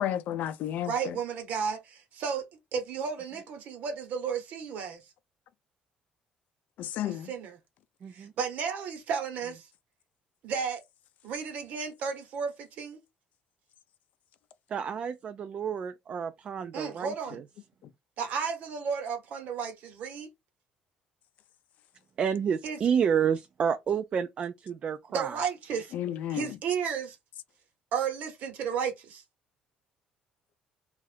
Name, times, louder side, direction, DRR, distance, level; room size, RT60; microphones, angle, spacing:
voice 1, 0.0-1.1 6.8-7.3 25.9-26.5, left 11 dB, 70° left, 0.4 m, -32 dB
voice 2, 0.8-2.4 2.7-5.0 7.0-7.6 8.1-9.7 10.4-10.8 11.2-13.0 16.7-17.4 18.2-20.3 22.6-22.8 25.1-25.9 26.3-27.2 27.9-29.2, right 6 dB, 65° right, 1.0 m, -33 dB
voice 3, 8.0-8.3 14.7-17.4 22.2-25.4, right 7 dB, 40° right, 0.3 m, -30 dB
2.7 x 2.4 x 3.3 m
cardioid pair, 130°, 3 cm